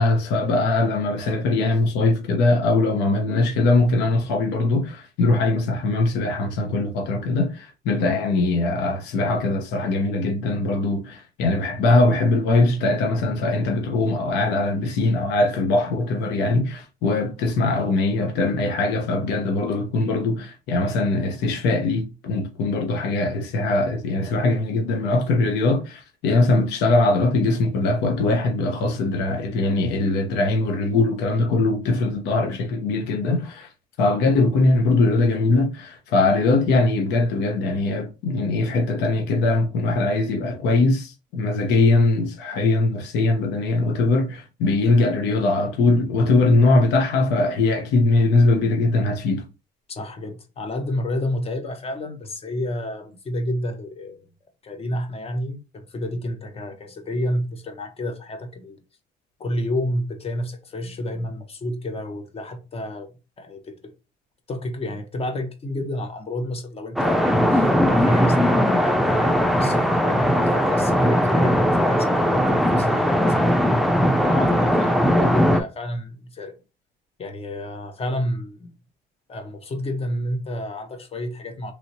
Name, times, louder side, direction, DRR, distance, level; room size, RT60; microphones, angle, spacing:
voice 1, 0.0-33.7 34.0-49.4, left 2 dB, 90° left, 0.9 m, -21 dB
voice 2, 49.9-54.3 54.6-58.8 59.4-63.1 63.4-63.9 64.5-73.6 74.2-76.6 77.2-78.7 79.3-81.7, left 1 dB, 35° left, 0.9 m, -30 dB
sound 1, 67.0-75.6, equal, ahead, 0.5 m, -19 dB
3.2 x 2.8 x 2.8 m
cardioid pair, 110°, 17 cm